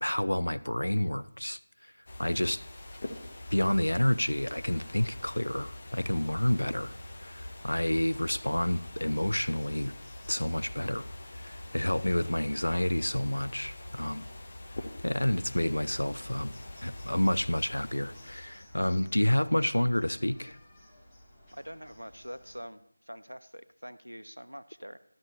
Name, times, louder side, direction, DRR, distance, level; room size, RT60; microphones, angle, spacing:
voice 1, 0.0-1.6 2.2-2.6 3.5-6.9 7.2-9.9 10.3-11.1 11.4-14.3 15.0-16.5 16.8-20.6, left 1 dB, 70° left, 0.4 m, -29 dB
sound 1, 2.1-18.9, left 1 dB, 35° left, 0.8 m, -44 dB
sound 2, 2.7-22.6, left 1 dB, 10° left, 1.1 m, -58 dB
voice 2, 21.5-25.0, equal, 85° right, 0.6 m, -45 dB
12.5 x 9.7 x 2.8 m
figure-of-eight pair, 165°, 0 cm